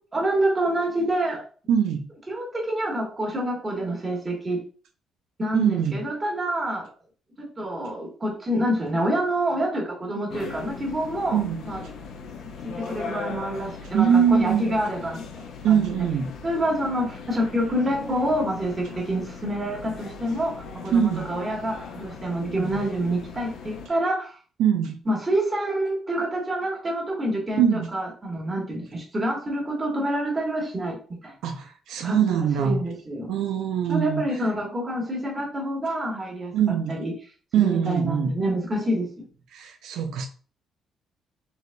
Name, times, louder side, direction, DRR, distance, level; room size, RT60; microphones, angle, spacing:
voice 1, 0.1-1.4 2.3-4.6 5.4-6.9 7.4-11.8 12.8-15.8 16.4-24.4 25.0-31.0 31.2-31.3 32.0-32.2 32.6-33.4 33.9-36.5 36.9-37.1 37.6-39.3, right 1 dB, 20° right, -2 dB, 1.3 m, -27 dB
voice 2, 1.7-2.1 5.5-6.0 11.3-11.6 13.9-14.7 15.6-16.3 20.9-21.3 24.6-25.0 27.6-27.9 31.4-32.8 33.3-34.2 36.5-37.0 37.5-38.4 39.5-40.3, right 8 dB, 85° right, 4 dB, 0.4 m, -22 dB
sound 1, 10.3-23.9, left 5 dB, 70° left, 0.5 m, -39 dB
4.0 x 3.2 x 2.2 m, 0.40 s
cardioid pair, 135°, 0 cm